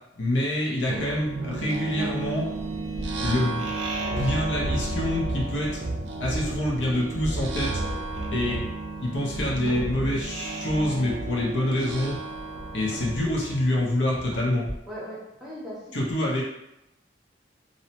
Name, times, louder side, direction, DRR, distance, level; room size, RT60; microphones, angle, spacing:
voice 1, 0.2-2.5 3.2-3.7 4.2-5.9 6.2-7.8 8.3-8.6 9.0-12.2 12.7-14.7 15.9-16.4, left 1 dB, 85° left, -3 dB, 0.7 m, -26 dB
sound 1, 0.9-14.5, right 2 dB, 90° right, 0.4 m, -32 dB
voice 2, 14.9-16.4, equal, 5° right, -7 dB, 0.6 m, -39 dB
2.7 x 2.1 x 2.8 m, 0.88 s
head